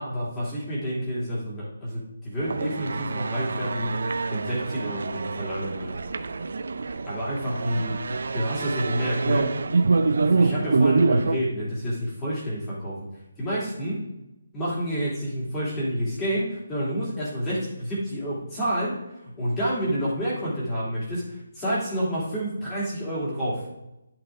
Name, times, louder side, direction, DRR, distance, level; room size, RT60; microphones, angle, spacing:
voice 1, 0.0-6.0 7.1-9.5 10.2-12.9 13.4-14.0 14.5-18.9 19.4-23.6, equal, 10° left, -8 dB, 2.9 m, -29 dB
sound 1, 2.4-11.4, right 3 dB, 60° right, 0.6 m, -25 dB
11.0 x 6.0 x 3.8 m, 0.91 s
hypercardioid pair, 175°, 0 cm